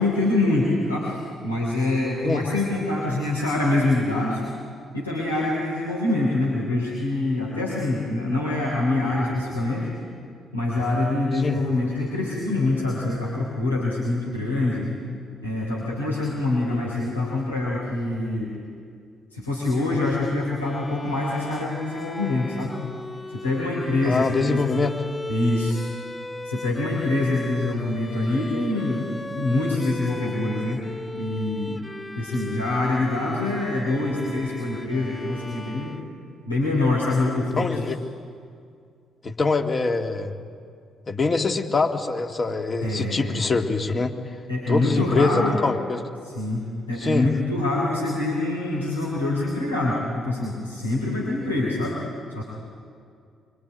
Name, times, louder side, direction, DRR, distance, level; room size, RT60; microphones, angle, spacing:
voice 1, 0.0-4.4 4.9-9.9 10.5-14.9 15.4-18.5 19.3-22.8 23.3-24.6 25.3-25.8 26.4-29.1 29.3-30.8 31.1-31.8 32.2-35.9 36.5-37.8 42.8-43.5 44.5-45.6 46.2-52.0 52.3-52.4, left 2 dB, 85° left, -5 dB, 3.7 m, -25 dB
Bowed string instrument, 20.6-36.5, left 2 dB, 20° left, 2.1 m, -38 dB
voice 2, 24.0-24.9 37.6-37.9 39.2-40.3 41.1-44.1 44.7-46.0 47.0-47.3, left 3 dB, 35° left, 3 dB, 2.5 m, -24 dB
25.0 x 24.0 x 9.4 m, 2.3 s
figure-of-eight pair, 45°, 0 cm